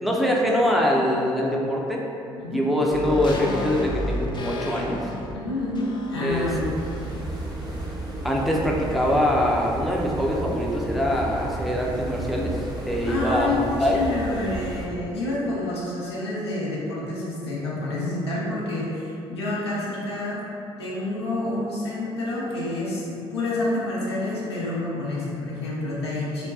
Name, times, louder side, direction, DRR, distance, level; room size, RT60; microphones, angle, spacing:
voice 1, 0.0-2.0 2.5-5.0 6.2-6.5 8.2-14.0, equal, ahead, -3 dB, 0.7 m, -24 dB
voice 2, 2.4-2.7 5.3-6.7 13.0-20.5 20.8-26.5, left 2 dB, 90° left, -6 dB, 0.7 m, -28 dB
sound 1, 2.9-7.4 7.7-7.8, left 1 dB, 35° left, 0.6 m, -31 dB
sound 2, 6.3-14.9, right 1 dB, 30° right, 1.0 m, -33 dB
3.9 x 2.2 x 3.5 m, 2.7 s
hypercardioid pair, 50°, 13 cm